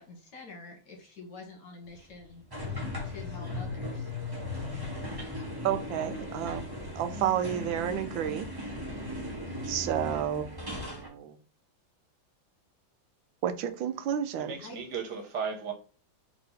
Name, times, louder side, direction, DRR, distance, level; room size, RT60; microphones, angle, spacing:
voice 1, 0.0-2.4 3.0-4.1 14.6-14.8, left 3 dB, 60° left, 2.0 m, -47 dB
sound 1, 2.5-11.1, left 2 dB, 15° right, 1.1 m, -37 dB
voice 2, 5.6-6.7 7.0-8.5 9.7-11.4 13.4-14.6, right 10 dB, 85° right, 1.3 m, -31 dB
voice 3, 14.3-15.7, right 6 dB, 60° right, 1.5 m, -35 dB
4.0 x 3.4 x 3.9 m
omnidirectional pair, 2.1 m